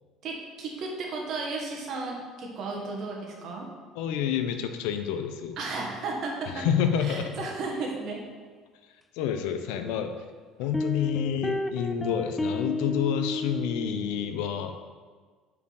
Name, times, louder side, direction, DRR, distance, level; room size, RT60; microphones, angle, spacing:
voice 1, 0.2-3.7 5.6-6.7 7.0-8.2, right 3 dB, 55° right, 0 dB, 1.5 m, -34 dB
voice 2, 3.9-5.6 6.5-7.3 8.8-10.1 10.6-14.7, left 8 dB, 85° left, 7 dB, 0.6 m, -29 dB
sound 1, 10.7-14.2, left 2 dB, 15° left, 0.3 m, -31 dB
5.3 x 4.8 x 4.8 m, 1.5 s
supercardioid pair, 100°, 0 cm